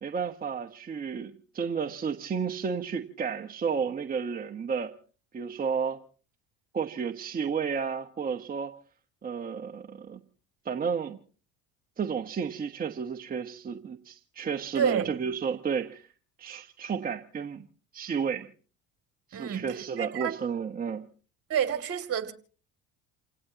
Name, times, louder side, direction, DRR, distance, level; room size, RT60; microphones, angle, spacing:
voice 1, 0.0-4.9 5.3-6.0 6.7-8.7 9.2-10.2 10.6-11.2 12.0-16.1 16.4-17.7 17.9-18.5 19.3-21.0, right 6 dB, 25° right, 1.1 m, -32 dB
voice 2, 14.7-15.1 19.3-19.6 20.0-20.4 21.5-22.3, right 9 dB, 40° right, 2.5 m, -28 dB
29.0 x 17.5 x 2.9 m
supercardioid pair, 95°, 35 cm